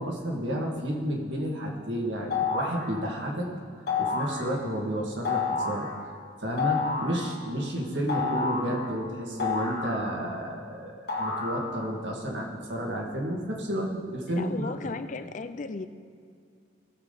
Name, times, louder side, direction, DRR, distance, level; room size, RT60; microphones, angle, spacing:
voice 1, 0.0-3.5 4.0-6.1 6.4-14.7, equal, 75° right, -1 dB, 2.1 m, -31 dB
sound 1, 2.3-2.9 3.9-4.4 5.3-5.9 6.6-7.2 8.1-8.8 9.4-10.4 11.1-11.9, left 4 dB, 55° left, 2.0 m, -29 dB
voice 2, 14.3-15.9, left 3 dB, 40° left, 11 dB, 0.5 m, -35 dB
18.0 x 7.3 x 4.1 m, 2.3 s
head